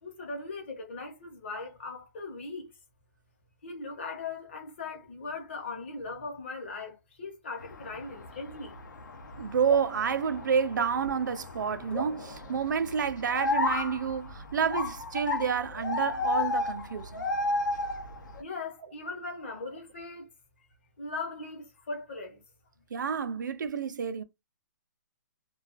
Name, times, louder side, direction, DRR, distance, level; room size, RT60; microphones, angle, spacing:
voice 1, 0.0-2.7 3.6-8.8 18.4-20.2 21.0-22.4, left 3 dB, 40° left, 0.8 m, -39 dB
sound 1, 7.6-18.4, left 3 dB, 85° left, 0.6 m, -34 dB
voice 2, 9.4-17.2 22.9-24.2, right 6 dB, 85° right, 0.4 m, -29 dB
sound 2, 9.7-11.3 11.9-13.6, equal, 10° left, 0.5 m, -42 dB
2.3 x 2.3 x 2.4 m
hypercardioid pair, 180°, 10 cm